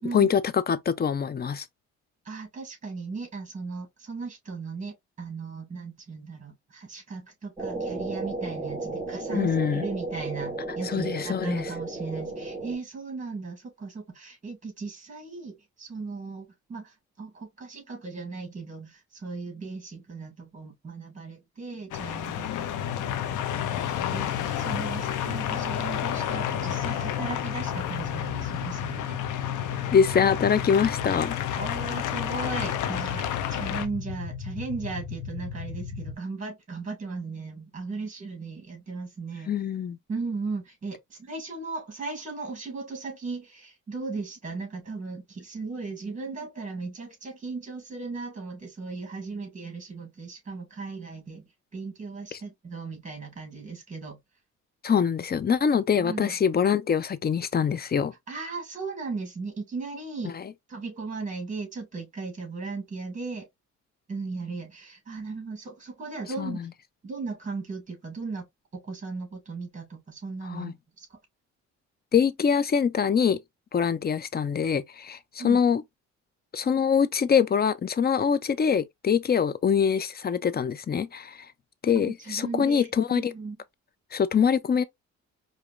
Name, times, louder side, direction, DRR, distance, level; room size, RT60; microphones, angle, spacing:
voice 1, 0.1-1.6 9.3-9.9 10.8-11.7 29.9-31.4 39.5-40.0 52.3-52.4 54.8-58.1 60.3-60.4 66.4-66.6 70.5-70.7 72.1-73.4 73.7-75.2 75.4-75.8 76.5-81.4 81.8-83.3 84.1-84.8, left 7 dB, 30° left, 0.5 m, -24 dB
voice 2, 2.2-29.2 31.5-33.2 33.5-39.5 40.1-51.4 51.7-54.2 56.0-56.4 58.3-60.3 60.7-63.5 64.1-66.6 67.0-68.4 68.7-71.1 75.4-75.6 81.9-83.6, right 4 dB, 25° right, 2.4 m, -37 dB
sound 1, 7.6-12.8, right 2 dB, 10° right, 1.9 m, -34 dB
sound 2, 21.9-33.9, left 11 dB, 80° left, 0.7 m, -31 dB
sound 3, 22.9-36.1, left 7 dB, 55° left, 1.0 m, -36 dB
4.9 x 2.7 x 2.4 m
cardioid pair, 90°, 30 cm